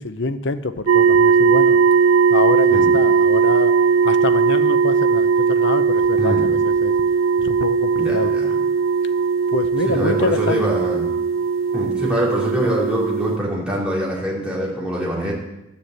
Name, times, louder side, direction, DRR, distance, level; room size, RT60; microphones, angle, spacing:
voice 1, 0.0-1.8 2.3-3.7 4.0-6.9 7.4-8.3 9.5-10.6, left 3 dB, 60° left, 11 dB, 0.8 m, -26 dB
sound 1, 0.9-13.4, right 5 dB, 85° right, 0.7 m, -18 dB
voice 2, 6.2-6.5 8.0-8.5 9.8-11.1 11.7-15.3, equal, 5° right, -5 dB, 3.5 m, -24 dB
11.5 x 7.0 x 7.9 m, 0.93 s
head